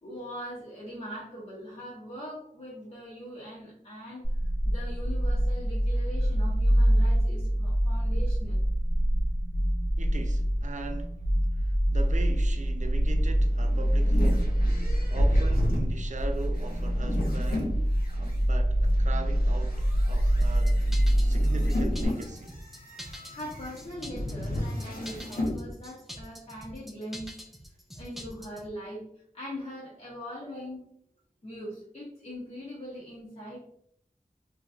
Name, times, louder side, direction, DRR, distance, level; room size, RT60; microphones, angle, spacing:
voice 1, 0.0-8.6 23.1-27.3 27.9-29.0 29.3-30.8 31.4-33.6, equal, 45° left, 0.8 m, -41 dB
sound 1, 4.2-22.0, equal, 70° left, 1.3 m, -25 dB
voice 2, 10.0-11.2 11.5-14.6 15.1-19.8 20.1-20.9 21.2-22.6, right 3 dB, 55° right, 0.4 m, -40 dB
sound 2, 13.3-18.4 18.9-25.6, left 1 dB, 85° left, 0.8 m, -33 dB
sound 3, 20.4-28.7, equal, ahead, 0.4 m, -44 dB
3.1 x 2.7 x 2.4 m
wide cardioid pair, 50°, 15 cm